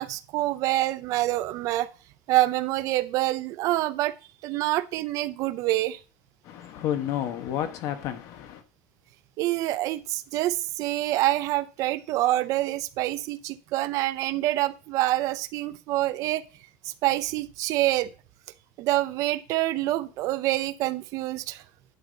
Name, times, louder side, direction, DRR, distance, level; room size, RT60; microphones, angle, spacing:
voice 1, 0.0-1.9 2.3-4.1 4.4-6.0 9.4-16.4 16.8-18.1 18.8-21.6, right 16 dB, 45° right, 0.5 m, -26 dB
voice 2, 6.4-8.6, left 10 dB, 45° left, 1.1 m, -31 dB
11.0 x 5.4 x 4.0 m
cardioid pair, 165°, 8 cm